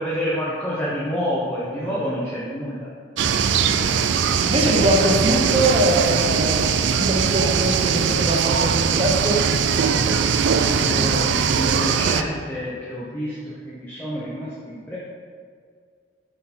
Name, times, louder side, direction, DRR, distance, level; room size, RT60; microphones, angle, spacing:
voice 1, 0.0-2.9 10.6-15.0, equal, 10° left, -8 dB, 1.0 m, -28 dB
sound 1, 3.2-12.2, right 6 dB, 70° right, 0.4 m, -20 dB
voice 2, 3.5-4.0 4.4-9.4, right 1 dB, 30° right, -1 dB, 1.0 m, -23 dB
7.4 x 4.7 x 4.3 m, 2.1 s
head